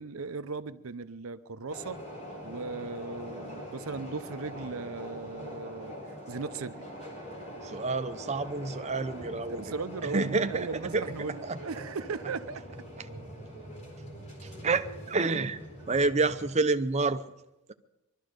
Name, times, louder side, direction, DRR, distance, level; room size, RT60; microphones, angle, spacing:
voice 1, 0.0-2.0 2.4-5.9 6.3-6.9 9.5-12.6, right 4 dB, 70° right, 13 dB, 0.6 m, -37 dB
sound 1, 1.7-16.5, equal, 35° left, 4.6 m, -43 dB
voice 2, 7.6-9.6 10.0-11.1 11.4-11.6 13.0-13.1 14.4-15.6 15.9-17.2, right 3 dB, 30° right, 10 dB, 0.7 m, -29 dB
22.0 x 12.5 x 5.2 m, 0.96 s
head